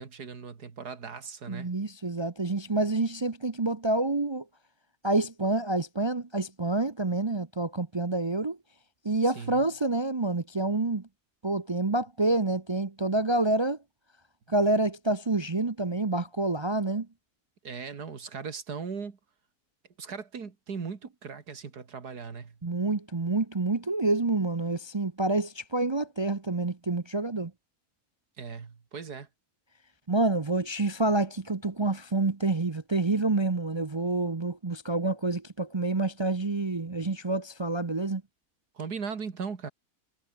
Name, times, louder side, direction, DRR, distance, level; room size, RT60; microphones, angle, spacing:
voice 1, 0.0-1.7 9.4-9.6 17.6-19.2 20.0-22.6 28.4-29.3 38.7-39.7, right 5 dB, 90° right, 2.8 m, -38 dB
voice 2, 1.5-4.4 5.0-8.6 9.0-11.1 11.4-13.8 14.5-17.1 22.6-27.5 30.1-38.2, right 2 dB, 25° right, 0.6 m, -28 dB
omnidirectional pair, 1.6 m